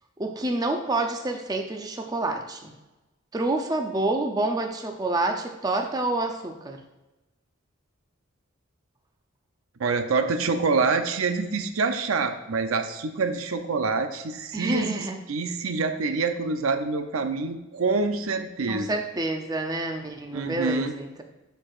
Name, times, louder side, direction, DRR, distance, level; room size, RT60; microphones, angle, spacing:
voice 1, 0.2-2.7 3.3-6.8 14.5-15.2 18.7-21.2, right 2 dB, 20° right, 4 dB, 0.6 m, -28 dB
voice 2, 9.8-18.9 20.3-20.9, right 4 dB, 80° right, 7 dB, 0.6 m, -26 dB
12.0 x 4.6 x 2.5 m, 1.1 s
head